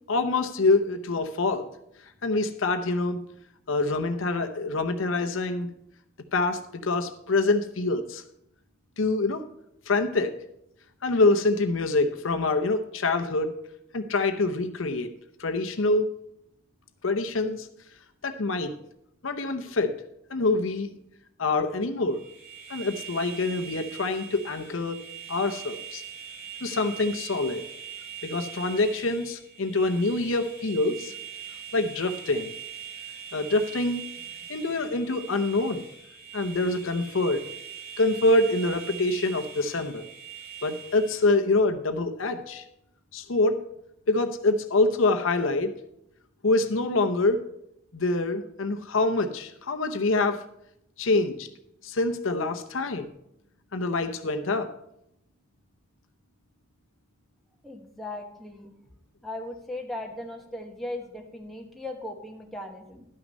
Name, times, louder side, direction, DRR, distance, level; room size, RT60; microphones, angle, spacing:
voice 1, 0.1-1.7 2.2-3.2 3.7-5.7 6.3-8.2 9.0-9.4 9.9-10.3 11.0-13.5 13.9-15.1 15.4-16.1 17.0-17.7 18.2-18.7 19.2-19.9 20.3-20.9 21.4-22.2 22.7-25.0 25.3-26.0 26.6-27.6 28.2-31.1 31.7-32.5 33.3-34.0 34.5-35.8 36.3-37.4 38.0-40.1 40.6-42.7 43.1-43.6 44.1-45.7 46.4-47.4 47.9-50.4 51.0-51.5 51.8-53.1 53.7-54.7, left 2 dB, 70° left, 8 dB, 0.8 m, -25 dB
sound 1, 22.1-41.3, right 9 dB, 65° right, 4.1 m, -42 dB
voice 2, 57.6-58.7 59.2-63.0, left 1 dB, ahead, 1 dB, 1.2 m, -38 dB
12.0 x 6.2 x 5.3 m, 0.77 s
head